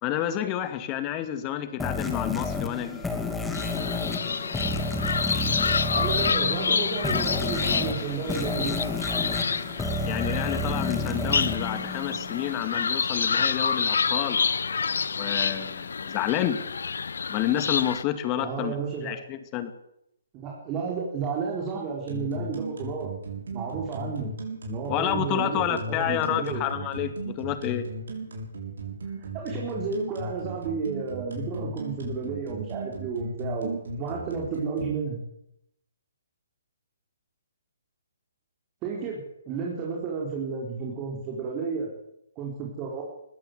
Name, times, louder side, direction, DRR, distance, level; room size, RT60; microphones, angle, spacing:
voice 1, 0.0-3.0 10.0-14.4 15.1-16.6 17.3-18.7 19.0-19.7 24.9-27.9, left 11 dB, 25° left, 11 dB, 2.3 m, -29 dB
sound 1, 1.8-12.6, left 2 dB, 5° left, 2.6 m, -31 dB
sound 2, 3.5-18.0, left 5 dB, 65° left, 0.8 m, -28 dB
voice 2, 5.9-8.8 18.4-19.1 20.3-23.1 23.5-24.3 24.6-26.6 29.2-35.2 38.8-39.2 39.5-41.9 42.4-43.0, right 5 dB, 25° right, -1 dB, 4.7 m, -32 dB
sound 3, 22.1-34.9, right 2 dB, 65° right, 7.1 m, -35 dB
21.0 x 15.0 x 8.3 m, 0.82 s
figure-of-eight pair, 135°, 0 cm